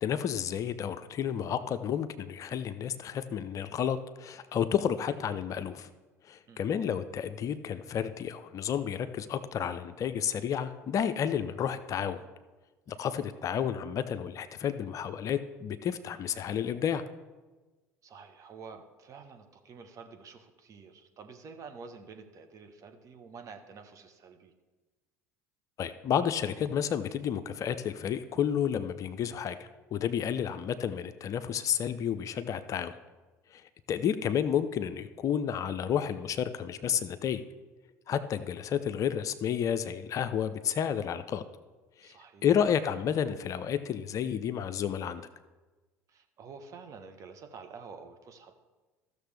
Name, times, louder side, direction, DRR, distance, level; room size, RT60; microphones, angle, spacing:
voice 1, 0.0-5.9 6.3-12.2 12.9-17.0 25.8-32.9 33.5-33.6 33.9-37.4 38.1-41.4 42.0-42.2 42.4-45.2, left 8 dB, 45° left, 11 dB, 0.5 m, -31 dB
voice 2, 12.9-13.3 18.0-24.5 30.3-30.4 42.0-42.5 46.1-48.5, right 5 dB, 45° right, 6 dB, 1.1 m, -49 dB
14.0 x 6.6 x 3.4 m, 1.2 s
hypercardioid pair, 70°, 8 cm